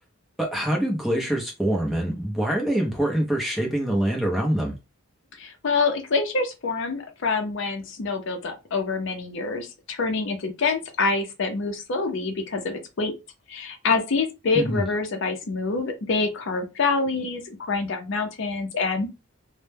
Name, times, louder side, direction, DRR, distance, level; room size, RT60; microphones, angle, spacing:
voice 1, 0.4-4.7 14.5-14.8, right 1 dB, ahead, 0.5 m, -25 dB
voice 2, 5.4-13.1 13.5-19.1, left 4 dB, 55° left, 0.5 m, -26 dB
2.1 x 2.1 x 3.2 m
head